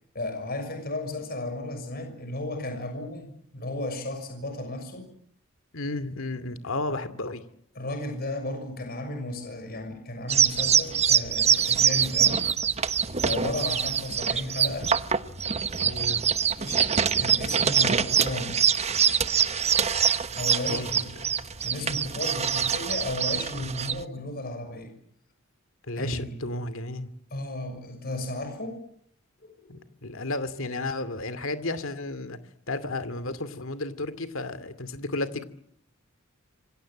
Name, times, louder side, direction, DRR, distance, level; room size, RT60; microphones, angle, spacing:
voice 1, 0.1-5.1 7.7-12.5 13.2-15.0 16.1-16.2 16.6-18.6 20.3-21.1 21.6-24.9 25.9-26.4 27.3-28.9 29.4-29.7, left 2 dB, 45° left, 5 dB, 6.5 m, -34 dB
voice 2, 5.7-7.4 13.3-13.5 15.8-16.2 20.7-21.3 25.9-27.1 29.7-32.4 32.7-35.5, left 2 dB, 65° left, 13 dB, 2.5 m, -33 dB
sound 1, 10.3-24.0, right 7 dB, 30° right, 1.1 m, -24 dB
27.5 x 24.5 x 7.7 m, 0.67 s
head